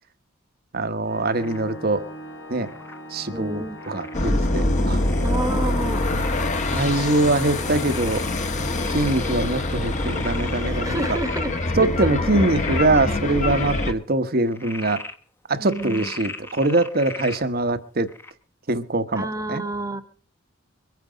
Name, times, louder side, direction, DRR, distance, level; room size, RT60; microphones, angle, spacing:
voice 1, 0.7-2.0 2.5-2.7 3.1-5.0 6.1-6.2 6.7-8.2 8.9-11.0 11.7-15.0 15.5-18.1 18.7-19.6, right 2 dB, 50° right, 11 dB, 1.1 m, -23 dB
Organ, 1.1-11.9, equal, 85° left, 2.9 m, -39 dB
Frog, 1.4-1.7 2.6-3.0 3.8-4.2 5.0-5.5 6.0-6.5 7.0-7.1 7.7-9.4 9.7-11.7 12.2-12.9 13.3-13.9 14.4-15.1 15.6-17.4 18.1-18.3, left 2 dB, 10° left, 1.0 m, -39 dB
voice 2, 3.3-3.8 5.2-6.1 10.6-11.5 15.6-16.1 19.1-20.0, right 2 dB, 15° right, 9 dB, 1.2 m, -29 dB
sound 1, 4.1-13.9, left 2 dB, 35° left, 1.3 m, -24 dB
23.0 x 9.4 x 5.1 m, 0.43 s
head